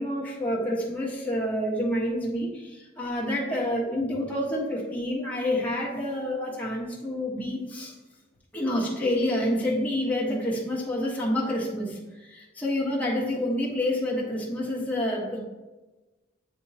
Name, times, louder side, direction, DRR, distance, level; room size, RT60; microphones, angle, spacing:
voice 1, 0.0-7.9 8.5-15.4, left 1 dB, 10° left, -5 dB, 1.4 m, -28 dB
9.1 x 3.6 x 2.9 m, 1.1 s
head